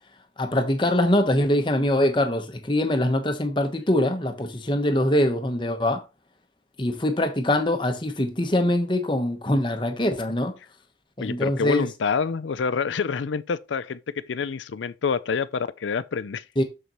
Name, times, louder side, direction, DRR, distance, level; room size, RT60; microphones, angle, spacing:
voice 1, 0.4-6.0 6.8-10.5 11.2-11.9 16.6-16.7, left 1 dB, 25° left, 1.0 m, -23 dB
voice 2, 11.2-14.0 14.3-16.4, left 5 dB, 80° left, 0.5 m, -27 dB
6.7 x 6.6 x 3.0 m
head